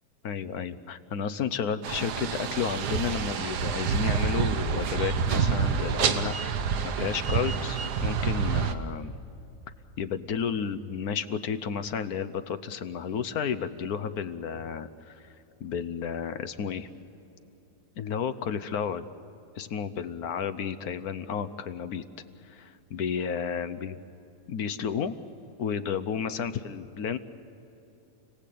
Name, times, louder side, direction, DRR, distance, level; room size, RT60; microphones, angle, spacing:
voice 1, 0.2-9.1 10.0-15.3 15.6-16.9 18.0-19.0 19.6-22.0 22.4-23.9 24.5-25.1 25.6-27.2, left 7 dB, 70° left, 13 dB, 1.3 m, -32 dB
sound 1, 1.8-8.7, right 6 dB, 80° right, 1.6 m, -28 dB
29.5 x 18.0 x 8.5 m, 2.8 s
omnidirectional pair, 1.7 m